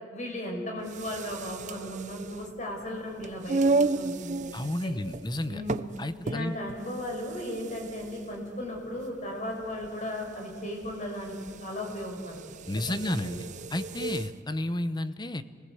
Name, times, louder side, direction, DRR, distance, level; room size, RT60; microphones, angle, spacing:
voice 1, 0.1-4.4 4.8-4.9 5.5-5.9 6.2-11.3 11.6-12.4 12.9-13.3, left 1 dB, 40° left, 1 dB, 5.0 m, -36 dB
sound 1, 0.8-14.4, right 3 dB, 40° right, 0.6 m, -34 dB
voice 2, 4.5-5.6 6.0-6.6 12.7-13.4 13.7-15.4, left 1 dB, 20° left, 12 dB, 0.8 m, -31 dB
26.5 x 20.0 x 7.9 m, 2.2 s
head